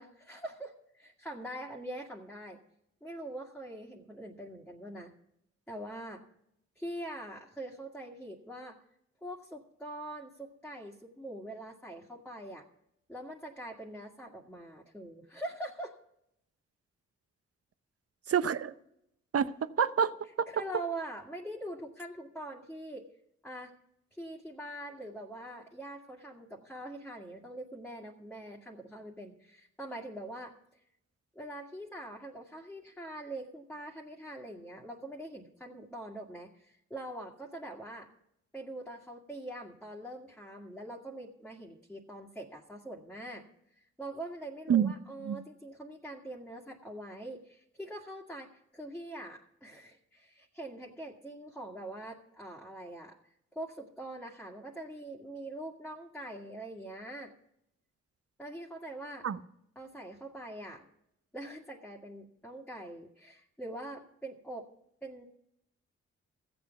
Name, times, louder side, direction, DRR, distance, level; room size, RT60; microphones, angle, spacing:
voice 1, 0.0-2.6 3.0-5.1 5.7-6.2 6.8-8.8 9.2-12.7 13.1-15.9 20.5-23.1 23.4-23.7 24.1-30.8 31.4-38.1 38.5-43.4 43.7-53.2 53.5-57.3 58.4-59.3 59.8-60.8 61.3-64.7 65.0-65.3, right 1 dB, 5° left, 1.9 m, -43 dB
voice 2, 18.3-18.7 19.3-20.5 44.7-44.9 45.2-45.4 59.2-59.4, right 8 dB, 50° right, 0.7 m, -28 dB
14.5 x 7.9 x 5.8 m
supercardioid pair, 45°, 30 cm